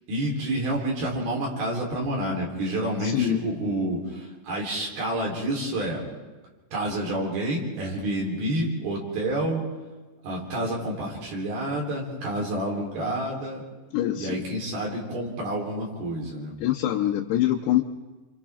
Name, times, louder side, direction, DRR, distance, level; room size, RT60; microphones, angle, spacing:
voice 1, 0.1-6.0 6.7-9.6 10.2-13.6 14.2-16.5, right 1 dB, 70° right, -2 dB, 5.9 m, -29 dB
voice 2, 3.0-3.4 13.9-14.4 16.6-17.8, left 13 dB, 85° left, 1 dB, 3.0 m, -24 dB
28.5 x 26.5 x 3.7 m, 1.2 s
omnidirectional pair, 4.7 m